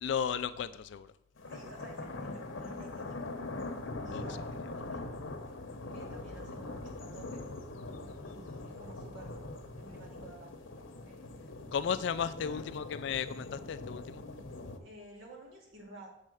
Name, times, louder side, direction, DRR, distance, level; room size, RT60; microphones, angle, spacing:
voice 1, 0.0-1.1 4.1-4.2 11.7-14.2, left 7 dB, 60° left, 14 dB, 0.3 m, -34 dB
sound 1, 1.4-14.8, left 2 dB, 80° left, 0.8 m, -42 dB
voice 2, 1.5-3.3 4.0-5.2 5.9-7.4 8.2-9.5 9.8-10.5 11.0-11.8 12.3-12.6 14.8-16.1, right 2 dB, 80° right, -2 dB, 2.2 m, -52 dB
6.6 x 4.2 x 6.2 m, 0.78 s
head